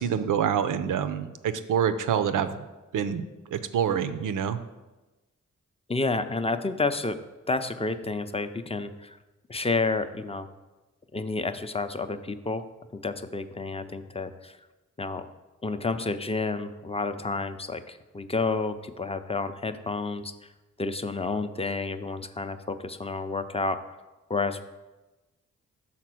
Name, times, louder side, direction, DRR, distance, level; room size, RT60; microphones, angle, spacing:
voice 1, 0.0-2.5 2.9-3.2 3.5-4.6, right 8 dB, 80° right, 11 dB, 0.5 m, -26 dB
voice 2, 5.9-7.2 7.5-9.2 9.5-10.5 11.1-12.6 12.9-14.6 15.0-15.3 15.6-20.3 20.8-23.8 24.3-24.6, left 3 dB, 20° left, 9 dB, 0.5 m, -30 dB
5.8 x 4.2 x 6.1 m, 1.1 s
cardioid pair, 55°, 31 cm